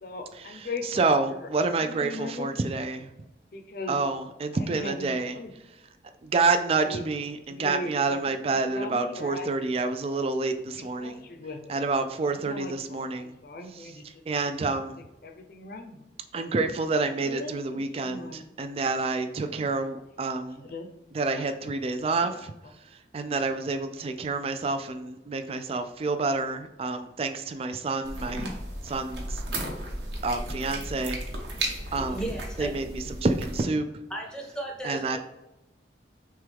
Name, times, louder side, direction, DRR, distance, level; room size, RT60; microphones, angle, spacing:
voice 1, 0.0-2.7 3.5-4.0 4.5-5.5 6.8-7.1 7.5-9.7 10.8-11.8 12.3-14.2 14.7-16.0 17.0-18.4 19.4-19.7 20.5-20.9 21.2-21.5 21.9-22.3, left 2 dB, 55° left, 6 dB, 0.6 m, -40 dB
voice 2, 0.9-3.1 3.9-5.3 6.2-11.2 11.7-13.3 14.3-15.0 16.3-20.6 21.1-22.5 23.1-28.5 28.8-29.4 30.2-31.2 31.9-32.2 32.6-33.9 34.8-35.2, right 3 dB, 35° right, 8 dB, 0.3 m, -28 dB
sound 1, 28.0-33.6, right 1 dB, 85° right, 1.0 m, -34 dB
voice 3, 31.9-32.8 34.1-35.2, right 1 dB, 5° left, 0 dB, 0.8 m, -35 dB
6.0 x 2.3 x 3.4 m, 0.96 s
head